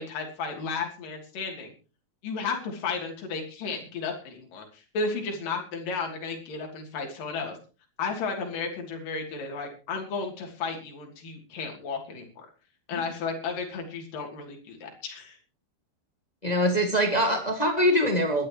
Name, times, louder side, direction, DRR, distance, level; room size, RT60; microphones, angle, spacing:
voice 1, 0.0-1.7 2.2-7.6 8.0-12.3 12.9-15.4, left 4 dB, 55° left, 2 dB, 4.5 m, -33 dB
voice 2, 16.4-18.5, equal, 20° left, 4 dB, 0.9 m, -23 dB
22.0 x 12.0 x 3.1 m, 0.34 s
omnidirectional pair, 4.7 m